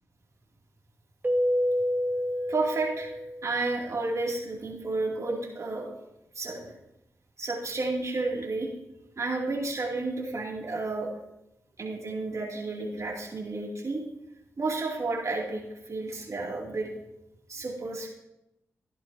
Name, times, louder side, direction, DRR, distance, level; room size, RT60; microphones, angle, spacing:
Keyboard (musical), 1.2-3.8, equal, 25° right, 1.4 m, -28 dB
voice 1, 2.5-5.9 6.3-6.7 7.4-8.7 9.2-11.1 11.8-14.0 14.6-16.9 17.5-18.1, right 3 dB, 55° right, -2 dB, 2.6 m, -31 dB
12.5 x 10.5 x 2.7 m, 0.89 s
cardioid pair, 45°, 6 cm